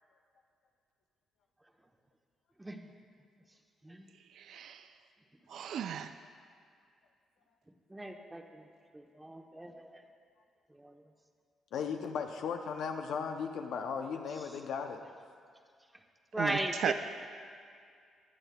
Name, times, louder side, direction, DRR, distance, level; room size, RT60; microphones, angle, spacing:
voice 1, 2.6-2.9 3.8-4.1 7.9-8.7 8.9-10.0 10.7-11.0 14.4-14.6 16.3-16.9, right 1 dB, 10° right, 4 dB, 0.9 m, -38 dB
voice 2, 4.4-4.8 5.5-6.1 16.4-16.9, right 9 dB, 70° right, 9 dB, 0.3 m, -35 dB
voice 3, 11.7-15.0, left 6 dB, 80° left, 4 dB, 0.6 m, -36 dB
21.5 x 8.0 x 2.2 m, 2.2 s
cardioid pair, 90°, 0 cm